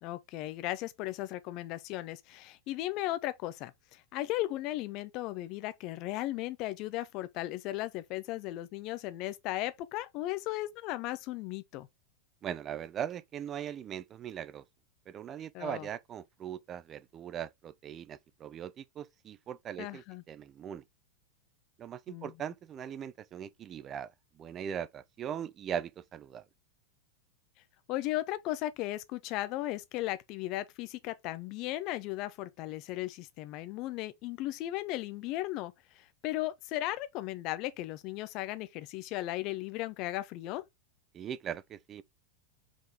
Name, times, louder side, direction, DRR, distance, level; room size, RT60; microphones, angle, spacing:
voice 1, 0.0-11.9 15.5-15.9 19.8-20.2 22.1-22.3 27.9-40.6, left 16 dB, 40° left, 0.7 m, -36 dB
voice 2, 12.4-14.6 15.1-20.8 21.8-26.4 41.1-42.0, right 9 dB, 30° right, 0.5 m, -40 dB
5.0 x 3.7 x 5.1 m
figure-of-eight pair, 90°, 0 cm